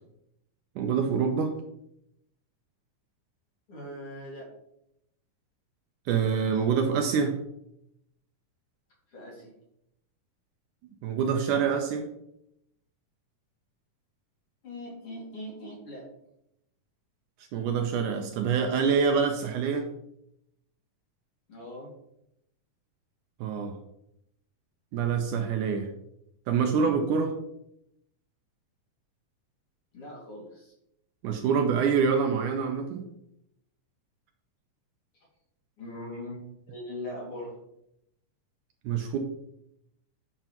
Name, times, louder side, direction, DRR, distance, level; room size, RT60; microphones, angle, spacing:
voice 1, 0.8-1.5 6.1-7.4 11.0-12.1 17.5-19.9 23.4-23.7 24.9-25.9 26.5-27.3 31.2-33.0 38.9-39.2, right 6 dB, 75° right, 4 dB, 2.0 m, -26 dB
voice 2, 3.7-4.5 9.1-9.5 14.6-16.1 21.5-21.9 29.9-30.7 35.1-35.3 35.8-37.6, left 1 dB, 45° left, -4 dB, 2.9 m, -41 dB
9.0 x 6.6 x 3.0 m, 0.80 s
omnidirectional pair, 3.9 m